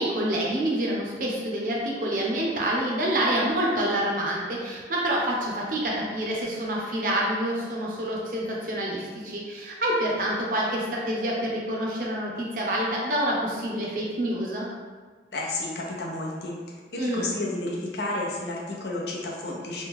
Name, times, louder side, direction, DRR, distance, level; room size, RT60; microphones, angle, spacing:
voice 1, 0.0-14.6 17.0-17.3, right 1 dB, 50° right, -3 dB, 0.6 m, -27 dB
voice 2, 15.3-16.6 16.9-19.9, left 2 dB, 70° left, -2 dB, 0.6 m, -31 dB
3.1 x 2.2 x 3.5 m, 1.5 s
head